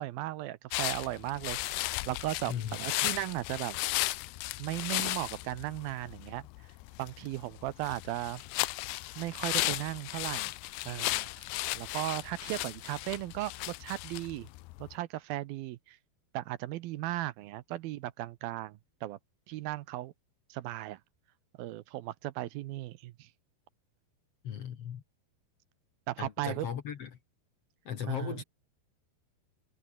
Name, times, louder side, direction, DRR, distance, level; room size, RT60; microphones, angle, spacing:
voice 1, 0.0-3.8 4.6-6.5 7.0-8.4 9.2-10.5 10.9-11.5 11.7-14.5 14.8-16.0 16.3-19.2 19.5-20.1 20.5-21.0 21.6-23.3 26.1-26.7 28.1-28.4, right 16 dB, 75° right, 2.4 m, -36 dB
sound 1, 0.7-14.9, left 20 dB, 90° left, 2.8 m, -35 dB
voice 2, 24.4-25.0 26.2-27.1 27.8-28.4, left 9 dB, 60° left, 1.6 m, -37 dB
omnidirectional pair, 4.8 m